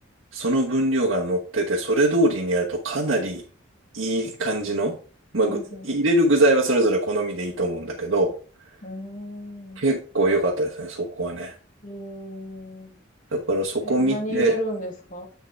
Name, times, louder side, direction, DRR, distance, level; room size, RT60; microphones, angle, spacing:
voice 1, 0.3-3.4 3.9-5.0 5.3-8.3 9.8-11.5 13.3-14.5, right 1 dB, 80° right, -3 dB, 1.1 m, -23 dB
voice 2, 5.5-5.9 8.8-9.8 11.8-13.0 13.8-15.3, equal, 40° left, 1 dB, 2.2 m, -33 dB
8.0 x 6.5 x 3.3 m, 0.40 s
head